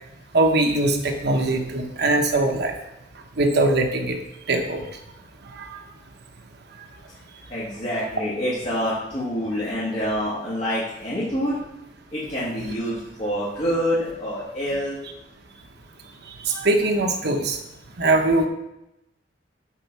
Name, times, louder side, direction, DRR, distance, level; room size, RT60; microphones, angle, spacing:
voice 1, 0.3-2.7 3.4-4.2 4.5-4.9 16.5-17.6 18.0-18.5, right 2 dB, 60° right, 3 dB, 1.1 m, -21 dB
voice 2, 7.5-11.6 12.1-15.0, equal, 40° left, -9 dB, 2.2 m, -26 dB
8.6 x 4.4 x 6.1 m, 0.87 s
head